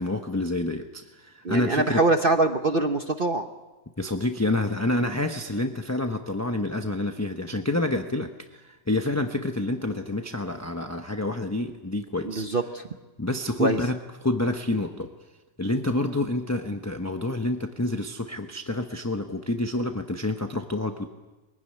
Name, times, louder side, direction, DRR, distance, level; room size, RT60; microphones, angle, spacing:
voice 1, 0.0-2.0 4.0-12.5 13.2-15.1 15.6-21.1, left 2 dB, 15° left, 4 dB, 0.8 m, -28 dB
voice 2, 1.4-3.5 12.3-12.8 13.6-13.8, right 2 dB, 40° right, 6 dB, 0.9 m, -23 dB
23.0 x 16.0 x 10.0 m, 1.2 s
omnidirectional pair, 1.7 m